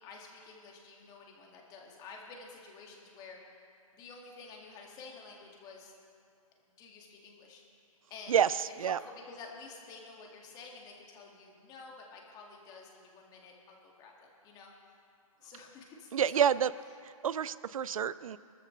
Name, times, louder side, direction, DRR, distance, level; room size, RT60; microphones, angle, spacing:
voice 1, 0.0-3.4 3.9-5.9 6.8-7.6 7.9-8.4 8.7-14.7 15.4-16.4 18.2-18.3, left 4 dB, 20° left, 0 dB, 2.0 m, -50 dB
voice 2, 8.3-9.0 16.1-16.7 17.0-18.4, right 8 dB, 70° right, 17 dB, 0.5 m, -28 dB
23.0 x 13.5 x 3.2 m, 2.4 s
hypercardioid pair, 145°, 18 cm